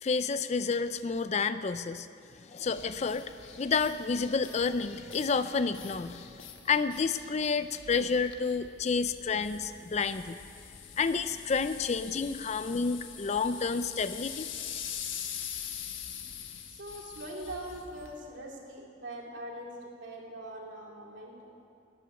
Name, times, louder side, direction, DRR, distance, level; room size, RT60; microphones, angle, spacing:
voice 1, 0.0-2.1 2.3-10.4 11.0-14.5, left 5 dB, 35° left, 12 dB, 0.4 m, -30 dB
sound 1, 2.6-18.2, left 8 dB, 80° left, 1.2 m, -44 dB
voice 2, 16.7-21.5, right 1 dB, 65° right, -2 dB, 2.7 m, -42 dB
12.5 x 9.3 x 9.0 m, 2.5 s
head